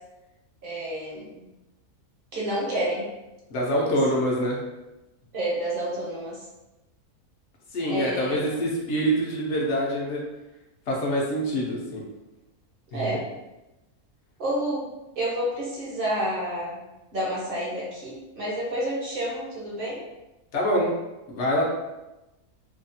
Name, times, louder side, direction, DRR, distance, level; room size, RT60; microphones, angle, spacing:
voice 1, 0.6-1.4 2.3-3.0 5.3-6.4 7.9-8.4 12.9-13.2 14.4-16.8 17.1-20.0, right 1 dB, 50° right, -5 dB, 0.8 m, -29 dB
voice 2, 3.5-4.6 7.7-10.2 10.9-12.0 12.9-13.1 20.5-20.9 21.3-21.6, equal, 60° left, -2 dB, 0.8 m, -25 dB
2.8 x 2.3 x 2.6 m, 0.99 s
omnidirectional pair, 1.6 m